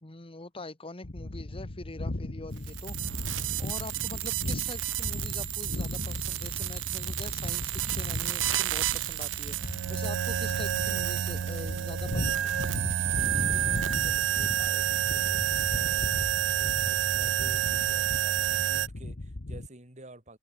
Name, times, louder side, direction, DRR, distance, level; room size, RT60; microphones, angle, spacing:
voice 1, 0.0-12.5, left 2 dB, 30° left, 1.5 m, -44 dB
sound 1, 1.0-19.7, left 2 dB, 55° left, 1.2 m, -37 dB
sound 2, 2.6-18.9, right 11 dB, 75° right, 0.4 m, -29 dB
voice 2, 13.4-15.4 15.7-20.4, right 1 dB, 40° right, 6.5 m, -49 dB
head